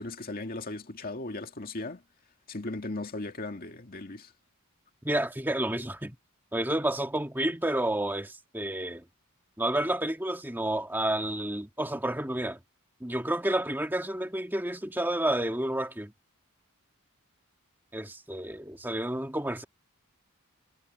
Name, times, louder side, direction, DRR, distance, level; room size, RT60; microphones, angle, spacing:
voice 1, 0.0-2.0 2.5-4.3, left 2 dB, 40° left, 2.2 m, -37 dB
voice 2, 5.0-6.2 6.5-9.0 9.6-12.6 13.0-16.1 17.9-19.6, right 1 dB, 10° right, 1.9 m, -30 dB
head